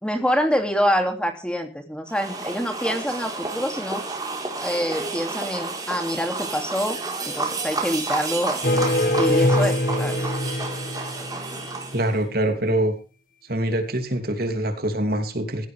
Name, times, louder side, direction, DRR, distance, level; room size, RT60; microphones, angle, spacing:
voice 1, 0.0-4.0 4.6-7.0 7.3-8.6 9.2-10.3, equal, 5° left, 5 dB, 2.6 m, -26 dB
sound 1, 2.1-12.2, right 3 dB, 20° right, 4.2 m, -31 dB
sound 2, 8.6-11.7, left 1 dB, 50° left, 1.6 m, -23 dB
voice 2, 11.9-12.9 13.5-15.7, right 1 dB, 55° right, 6 dB, 3.0 m, -24 dB
17.5 x 15.0 x 3.5 m, 0.35 s
head